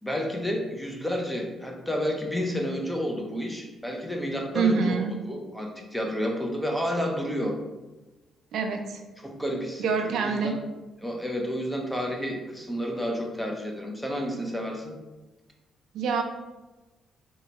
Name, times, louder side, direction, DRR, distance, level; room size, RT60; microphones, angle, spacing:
voice 1, 0.0-7.6 9.2-10.6 11.0-15.0, equal, 5° left, 1 dB, 0.6 m, -30 dB
voice 2, 4.5-5.1 8.5-9.0 9.8-10.6 15.9-16.2, right 5 dB, 75° right, 4 dB, 0.3 m, -25 dB
3.9 x 2.2 x 2.9 m, 1.1 s
cardioid pair, 90°, 0 cm